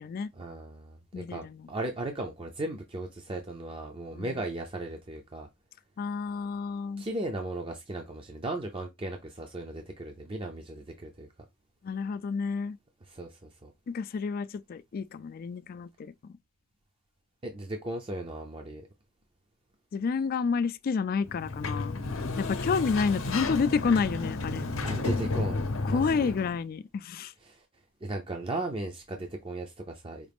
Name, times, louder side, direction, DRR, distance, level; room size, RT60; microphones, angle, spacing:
voice 1, 0.3-5.5 7.0-11.3 13.0-13.7 17.4-18.9 24.8-26.3 27.4-27.6 28.0-30.3, right 2 dB, 25° right, 0.5 m, -36 dB
voice 2, 1.1-1.7 4.1-4.3 6.0-7.1 11.8-12.8 13.9-16.1 19.9-22.0 22.4-24.6 25.8-27.3, left 5 dB, 45° left, 0.3 m, -30 dB
Sliding door, 21.2-26.6, left 3 dB, 80° left, 0.7 m, -32 dB
4.9 x 2.4 x 3.5 m
head